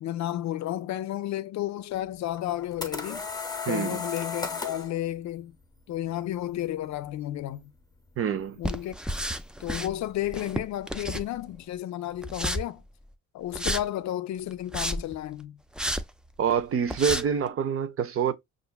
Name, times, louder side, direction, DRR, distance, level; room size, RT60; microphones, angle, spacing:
voice 1, 0.0-3.3 3.7-5.6 5.9-7.7 8.6-9.0 9.6-12.8 13.3-15.6, left 13 dB, 65° left, 0.5 m, -32 dB
sound 1, 2.4-4.9, left 4 dB, 15° left, 0.9 m, -34 dB
voice 2, 3.7-4.0 8.2-8.6 16.4-18.3, right 7 dB, 45° right, 0.6 m, -26 dB
sound 2, 8.6-9.9 10.3-11.6 12.2-12.6 13.5-13.8 14.5-15.1 15.8-16.0 16.5-16.6 16.9-17.2, equal, 5° right, 0.3 m, -31 dB
5.6 x 2.5 x 2.2 m
cardioid pair, 90°, 30 cm